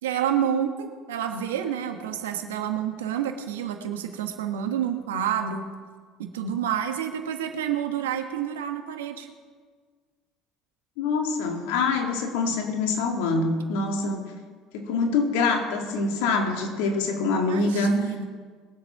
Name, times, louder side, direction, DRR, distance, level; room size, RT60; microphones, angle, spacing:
voice 1, 0.0-5.6 6.2-9.3 17.5-18.2, right 9 dB, 80° right, 6 dB, 1.4 m, -29 dB
voice 2, 11.0-14.2 14.7-18.0, left 3 dB, 75° left, 3 dB, 2.4 m, -25 dB
21.5 x 8.0 x 5.8 m, 1.5 s
hypercardioid pair, 65°, 0 cm